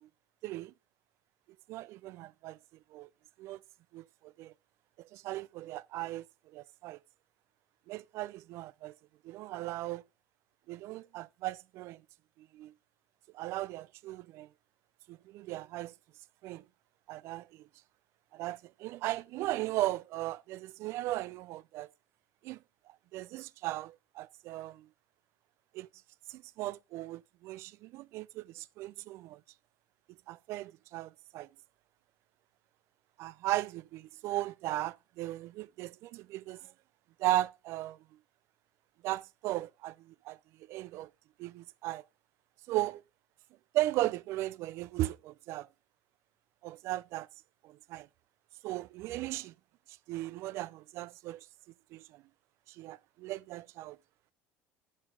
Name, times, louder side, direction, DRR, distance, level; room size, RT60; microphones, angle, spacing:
voice 1, 0.4-0.7 1.7-2.6 2.9-3.1 3.4-3.6 3.9-4.5 5.0-6.3 6.5-7.0 7.9-8.9 9.2-10.0 10.7-12.0 12.4-12.7 13.3-14.5 15.1-15.9 16.4-16.6 17.1-17.7 18.3-21.9 22.4-22.6 23.1-24.9 25.7-25.9 26.3-29.4 30.3-31.5 33.2-36.6 37.2-38.0 39.0-40.4 40.7-41.1 41.4-42.0 42.7-43.0 43.7-45.7 46.6-47.3 47.6-48.1 48.6-49.5 50.1-51.5 51.9-52.2 52.7-54.0, right 16 dB, 60° right, 0.5 m, -37 dB
9.5 x 7.4 x 3.8 m
supercardioid pair, 115°, 5 cm